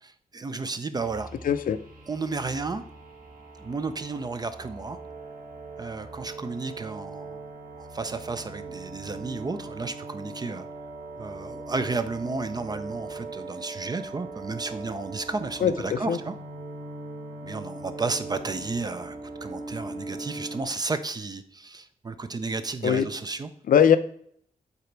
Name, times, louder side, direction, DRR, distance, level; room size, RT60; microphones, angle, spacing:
voice 1, 0.0-1.3 2.1-2.8 3.6-5.0 5.8-7.5 7.8-10.7 11.2-16.3 17.4-23.5, right 3 dB, 25° right, 10 dB, 0.4 m, -32 dB
sound 1, 1.0-20.6, right 3 dB, 70° right, 2.5 m, -40 dB
voice 2, 1.4-1.8 15.6-16.2 22.8-23.0 23.7-24.0, left 8 dB, 65° left, 12 dB, 0.5 m, -20 dB
8.1 x 3.9 x 4.5 m, 0.64 s
wide cardioid pair, 165°, 15 cm